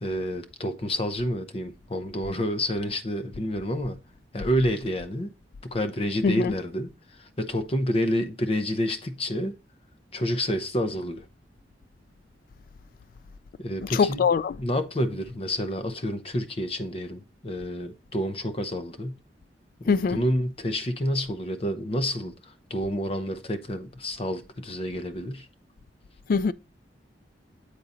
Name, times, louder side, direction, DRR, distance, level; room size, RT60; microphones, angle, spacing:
voice 1, 0.0-4.0 4.3-5.3 5.6-6.9 7.2-9.6 10.1-11.2 13.6-14.2 14.6-19.2 19.8-25.5, equal, 35° left, 0.7 m, -29 dB
voice 2, 6.2-6.5 13.8-14.6 19.9-20.2 26.3-26.5, left 5 dB, 50° left, 0.3 m, -23 dB
8.4 x 3.9 x 4.0 m
head